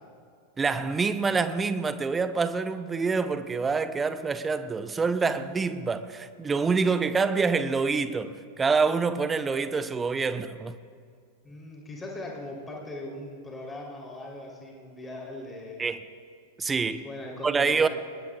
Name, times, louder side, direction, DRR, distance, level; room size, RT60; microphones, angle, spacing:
voice 1, 0.6-10.8 15.8-16.0 16.6-17.0 17.4-17.9, right 4 dB, 15° right, 0.7 m, -26 dB
voice 2, 11.4-15.8 17.0-17.9, left 1 dB, 15° left, 3.5 m, -40 dB
21.5 x 20.5 x 2.4 m
figure-of-eight pair, 90°, 0 cm